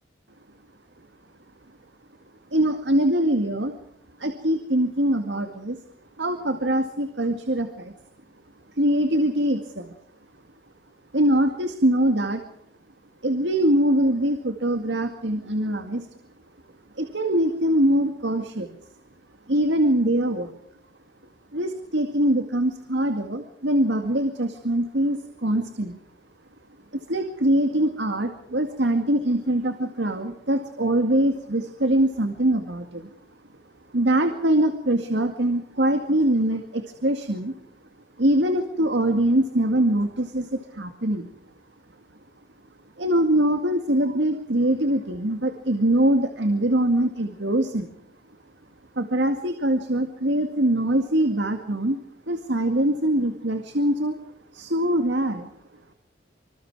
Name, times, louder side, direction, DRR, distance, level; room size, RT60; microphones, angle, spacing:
voice 1, 2.5-3.8 4.2-5.8 6.2-7.9 8.8-9.9 11.1-12.4 13.2-16.1 17.0-18.8 19.5-20.5 21.5-26.0 27.1-33.1 33.9-37.5 38.2-41.3 43.0-47.9 49.0-52.0 52.3-54.1 54.5-55.5, right 1 dB, 75° right, 6 dB, 2.1 m, -23 dB
26.5 x 26.0 x 4.8 m, 0.70 s
head